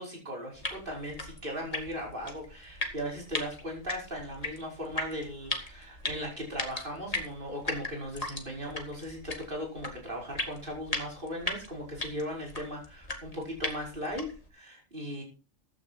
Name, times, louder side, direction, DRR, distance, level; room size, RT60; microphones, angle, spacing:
voice 1, 0.0-15.2, equal, 40° right, -1 dB, 5.5 m, -38 dB
sound 1, 0.5-14.5, left 2 dB, 25° left, 2.1 m, -38 dB
15.0 x 9.5 x 4.4 m, 0.33 s
omnidirectional pair, 1.5 m